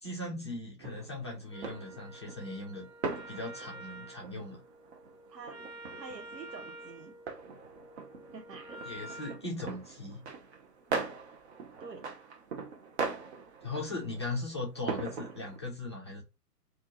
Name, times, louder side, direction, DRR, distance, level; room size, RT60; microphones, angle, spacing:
voice 1, 0.0-2.9 3.3-4.6 8.8-10.2 13.6-16.2, left 2 dB, 20° left, 0.4 m, -38 dB
sound 1, 0.8-15.6, right 4 dB, 45° right, 0.8 m, -41 dB
Wind instrument woodwind instrument, 1.5-9.5, right 1 dB, 60° right, 1.6 m, -49 dB
voice 2, 5.3-5.6 6.0-7.2 8.3-8.8 11.8-12.1, right 4 dB, 90° right, 0.7 m, -47 dB
3.9 x 2.5 x 2.9 m
figure-of-eight pair, 135°, 48 cm